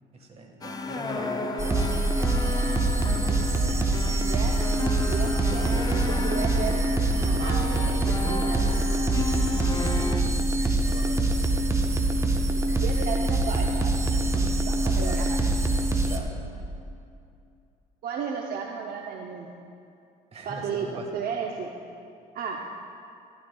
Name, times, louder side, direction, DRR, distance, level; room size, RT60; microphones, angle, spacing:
voice 1, 0.1-1.9 10.8-11.5 15.0-15.3 16.0-16.5 20.3-21.0, right 2 dB, 40° right, 1 dB, 1.5 m, -40 dB
sound 1, 0.6-10.2, left 3 dB, 25° left, 0.5 m, -33 dB
sound 2, 1.6-16.2, right 2 dB, 15° right, 0.7 m, -24 dB
voice 2, 4.2-4.6 5.0-6.8 7.2-8.8 12.6-13.9 14.2-15.4 18.0-19.5 20.4-21.7 22.3-22.8, right 6 dB, 60° right, 1 dB, 0.7 m, -34 dB
12.0 x 12.0 x 2.3 m, 2.5 s
cardioid pair, 110°, 17 cm